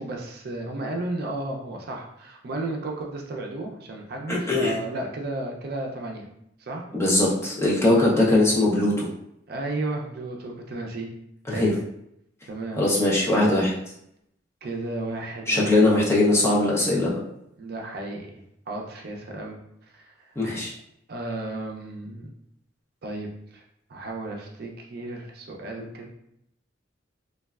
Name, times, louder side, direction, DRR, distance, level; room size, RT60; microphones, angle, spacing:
voice 1, 0.0-6.3 6.6-6.8 9.5-11.1 11.5-11.7 12.5-12.8 14.6-15.8 17.6-19.6 19.9-20.2 21.1-22.3 23.0-23.6 23.9-26.1, right 2 dB, 55° right, 0 dB, 0.5 m, -33 dB
voice 2, 4.3-4.7 6.9-9.1 11.5-11.7 12.8-13.7 15.5-17.2 20.4-20.7, left 2 dB, 15° left, -5 dB, 0.5 m, -21 dB
3.1 x 2.3 x 2.3 m, 0.77 s
head